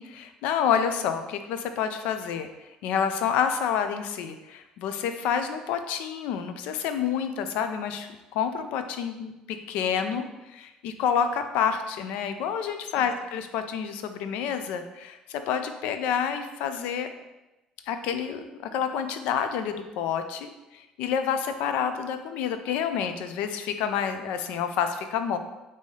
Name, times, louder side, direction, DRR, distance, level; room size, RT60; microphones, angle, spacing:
voice 1, 0.0-2.5 2.8-17.1 17.9-25.4, left 7 dB, 75° left, 8 dB, 0.4 m, -28 dB
5.4 x 2.7 x 3.2 m, 1.0 s
cardioid pair, 180°, 2 cm